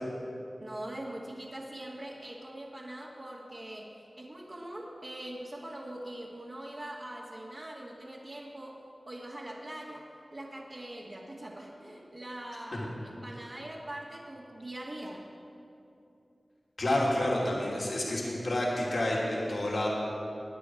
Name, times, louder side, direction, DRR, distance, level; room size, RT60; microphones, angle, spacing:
voice 1, 0.6-15.3, right 1 dB, 50° right, -6 dB, 1.9 m, -42 dB
voice 2, 16.8-19.9, left 1 dB, 70° left, -4 dB, 2.7 m, -29 dB
22.0 x 9.3 x 4.8 m, 2.7 s
cardioid pair, 45°, 0 cm